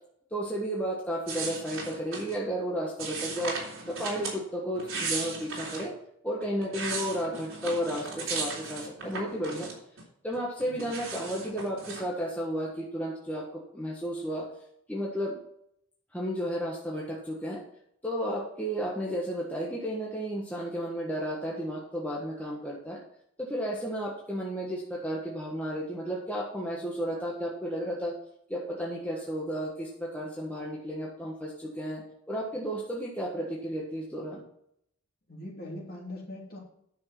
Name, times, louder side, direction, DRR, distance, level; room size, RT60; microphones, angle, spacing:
voice 1, 0.3-3.6 3.9-5.9 6.2-9.7 10.2-14.5 14.9-15.4 16.1-17.6 18.0-23.0 23.4-28.2 28.5-34.4, equal, 5° left, -3 dB, 1.3 m, -33 dB
sound 1, 1.3-2.4 3.0-4.4 4.7-5.9 6.4-10.0 10.3-12.1, right 4 dB, 75° right, 3.5 m, -36 dB
voice 2, 35.3-36.6, left 1 dB, 45° left, -2 dB, 3.0 m, -41 dB
10.0 x 6.4 x 6.0 m, 0.72 s
head